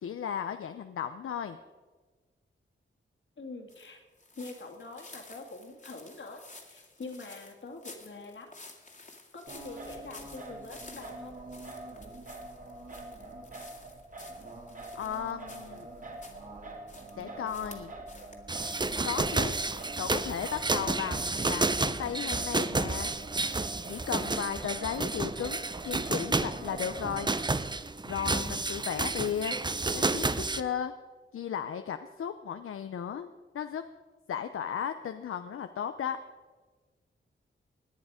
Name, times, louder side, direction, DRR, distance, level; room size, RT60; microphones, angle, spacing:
voice 1, 0.0-1.6 14.9-15.9 17.2-17.9 19.0-19.6 20.0-23.1 23.9-27.3 28.0-29.6 29.9-30.3 30.5-30.9 31.3-33.8 34.3-36.2, left 8 dB, 80° left, 9 dB, 0.6 m, -35 dB
voice 2, 3.4-4.0 4.4-6.4 6.7-8.5 9.3-11.3, left 3 dB, 60° left, 2 dB, 2.4 m, -44 dB
sound 1, 3.7-16.5 16.9-18.4 18.6-19.9, left 3 dB, 35° left, 2.1 m, -52 dB
Singing, 9.5-27.6, right 2 dB, 40° right, 2.1 m, -45 dB
sound 2, 18.5-30.6, right 3 dB, 20° right, 0.6 m, -31 dB
18.0 x 9.8 x 5.0 m, 1.3 s
cardioid pair, 60°, 21 cm